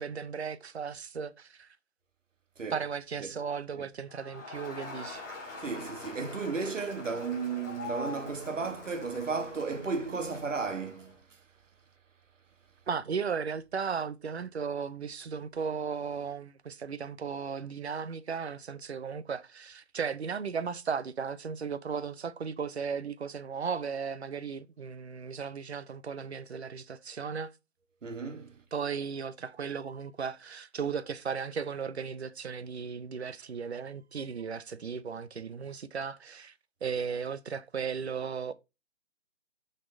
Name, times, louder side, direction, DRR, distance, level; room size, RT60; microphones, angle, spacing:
voice 1, 0.0-1.7 2.7-5.2 12.9-27.5 28.7-36.5 36.8-38.5, right 6 dB, 55° right, 0.6 m, -36 dB
Crowd, 4.1-11.1, left 2 dB, 15° left, 1.5 m, -44 dB
voice 2, 5.6-11.1 28.0-28.5, right 4 dB, 75° right, 1.5 m, -34 dB
6.4 x 4.3 x 3.8 m
hypercardioid pair, 180°, 38 cm